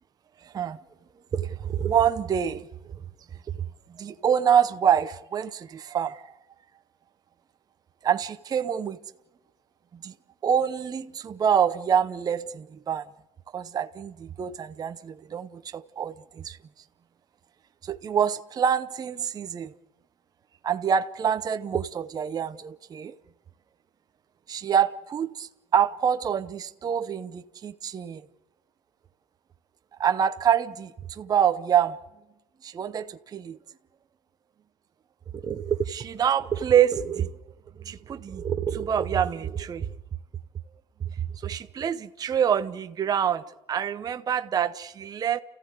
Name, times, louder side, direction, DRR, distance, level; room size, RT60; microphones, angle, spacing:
voice 1, 0.4-0.8 1.3-2.7 3.9-6.3 8.0-9.0 10.0-10.1 10.4-13.1 13.5-16.6 17.8-19.7 20.6-23.1 24.5-28.2 30.0-32.0 32.6-33.6 35.3-37.3 37.8-39.9 41.4-43.4 43.7-45.4, right 8 dB, 20° right, 0.7 m, -26 dB
30.0 x 15.0 x 8.1 m
supercardioid pair, 120°, 18 cm